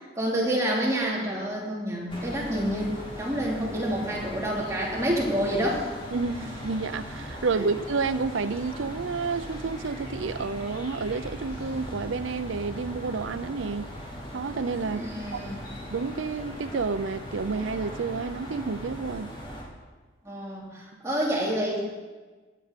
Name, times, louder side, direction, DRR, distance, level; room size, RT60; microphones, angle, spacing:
voice 1, 0.2-2.9 3.1-5.9 14.8-15.5 20.2-21.8, equal, 15° right, 2.8 m, -28 dB
sound 1, 2.1-19.6, equal, 30° left, 4.7 m, -39 dB
voice 2, 6.1-13.9 14.3-15.0 15.3-15.5 15.9-19.3, right 4 dB, 85° right, 0.6 m, -30 dB
17.0 x 11.0 x 5.1 m
head